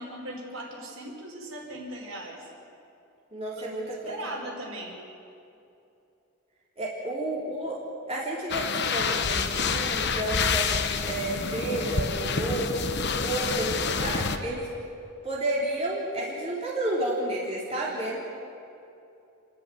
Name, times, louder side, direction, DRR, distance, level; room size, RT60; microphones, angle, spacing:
voice 1, 0.0-2.4 4.0-4.9 17.8-17.9, right 1 dB, 65° right, -2 dB, 5.3 m, -38 dB
voice 2, 3.3-4.2 6.8-7.8 8.1-12.8 13.2-14.7 15.2-18.3, right 1 dB, 25° right, -6 dB, 3.5 m, -31 dB
sound 1, 8.5-14.4, left 5 dB, 50° left, 1.1 m, -28 dB
29.5 x 11.5 x 9.3 m, 2.7 s
head